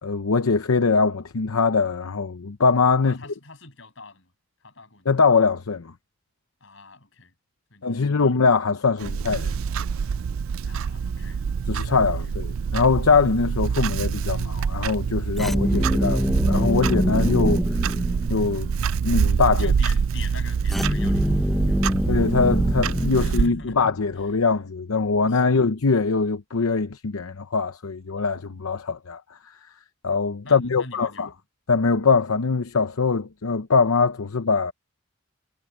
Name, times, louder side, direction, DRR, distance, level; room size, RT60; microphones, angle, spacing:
voice 1, 0.0-3.2 5.1-5.9 7.8-9.5 11.7-12.5 12.7-17.6 18.3-18.7 19.0-19.7 22.1-29.4 30.0-31.3 31.7-34.7, left 4 dB, 90° left, 0.8 m, -22 dB
voice 2, 3.0-4.3 4.6-5.1 6.6-7.3 7.7-8.3 10.6-11.4 12.3-12.4 19.6-22.4 23.1-23.8 24.2-24.4 25.2-25.7 30.4-31.4, left 3 dB, 60° left, 7.2 m, -43 dB
Clock, 9.0-23.5, right 6 dB, 70° right, 0.4 m, -26 dB
sound 1, 15.4-18.7 20.7-24.0, equal, ahead, 1.1 m, -24 dB
head